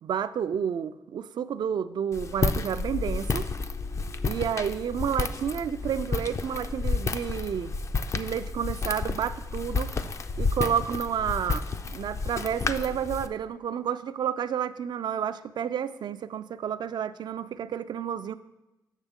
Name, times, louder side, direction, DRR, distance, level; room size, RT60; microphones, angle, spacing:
voice 1, 0.0-3.5 4.2-7.7 8.1-10.0 10.4-18.3, right 8 dB, 65° right, 13 dB, 0.3 m, -30 dB
Walk footsteps, 2.1-13.3, left 4 dB, 40° left, 0.4 m, -31 dB
8.1 x 6.6 x 3.6 m, 0.98 s
cardioid pair, 85°, 8 cm